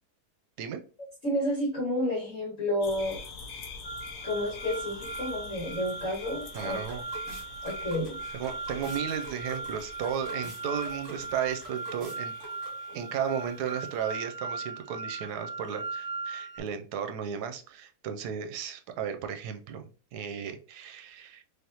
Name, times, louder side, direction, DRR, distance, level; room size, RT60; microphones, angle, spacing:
voice 1, 1.2-3.2 4.2-6.8 7.6-8.2 12.9-13.0, left 1 dB, 50° left, -6 dB, 1.9 m, -30 dB
sound 1, 2.8-14.0, left 4 dB, 70° left, 1.2 m, -46 dB
sound 2, 3.8-16.6, right 3 dB, 25° left, 1.1 m, -39 dB
sound 3, 5.9-13.0, right 1 dB, 55° right, 1.7 m, -48 dB
voice 2, 6.5-7.0 8.3-12.3 12.9-21.4, right 8 dB, 90° right, 7 dB, 1.2 m, -34 dB
3.5 x 3.4 x 2.8 m, 0.38 s
omnidirectional pair, 1.7 m